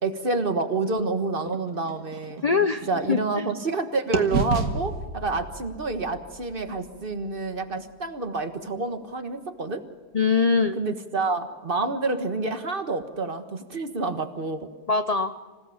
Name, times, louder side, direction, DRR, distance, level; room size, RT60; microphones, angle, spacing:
voice 1, 0.0-2.4 2.9-9.8 10.7-14.7, right 3 dB, 35° right, 8 dB, 1.5 m, -28 dB
sound 1, 1.4-3.8 4.1-8.1, right 4 dB, 65° right, 2.0 m, -32 dB
voice 2, 2.4-3.5 10.1-10.8 14.9-15.3, left 5 dB, 60° left, 9 dB, 0.4 m, -23 dB
26.0 x 17.0 x 7.1 m, 1.5 s
omnidirectional pair, 1.7 m